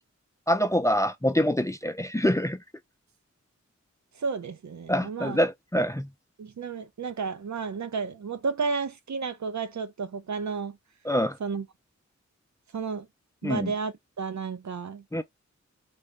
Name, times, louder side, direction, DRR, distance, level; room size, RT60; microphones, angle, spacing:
voice 1, 0.5-2.6 4.9-6.1 11.1-11.4 13.4-13.7 15.1-15.2, equal, 10° left, 0.4 m, -25 dB
voice 2, 4.2-5.4 6.4-10.8 11.4-11.7 12.7-13.1 13.4-15.0, right 5 dB, 70° right, 0.6 m, -32 dB
3.8 x 2.2 x 3.1 m
cardioid pair, 55°, 30 cm